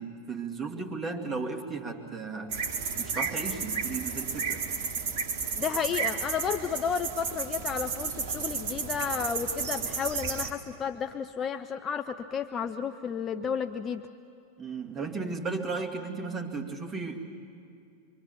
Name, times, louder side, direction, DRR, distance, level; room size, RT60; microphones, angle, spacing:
voice 1, 0.0-2.5 2.9-4.6 14.6-17.2, right 4 dB, 20° right, 1 dB, 2.3 m, -35 dB
sound 1, 2.5-10.5, right 5 dB, 50° right, 1.7 m, -32 dB
voice 2, 5.6-14.0, left 7 dB, 25° left, 9 dB, 0.6 m, -32 dB
25.0 x 24.0 x 7.2 m, 2.5 s
figure-of-eight pair, 90°, 0 cm